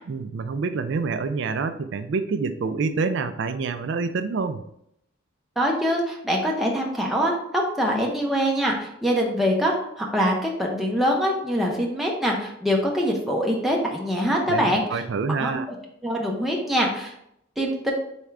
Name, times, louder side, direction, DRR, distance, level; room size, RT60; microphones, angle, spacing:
voice 1, 0.1-4.6 14.5-15.6, right 4 dB, 60° right, 11 dB, 0.4 m, -27 dB
voice 2, 5.6-15.0 15.4-15.6 16.0-17.1 17.6-17.9, equal, ahead, -2 dB, 0.7 m, -24 dB
4.3 x 3.6 x 3.4 m, 0.75 s
head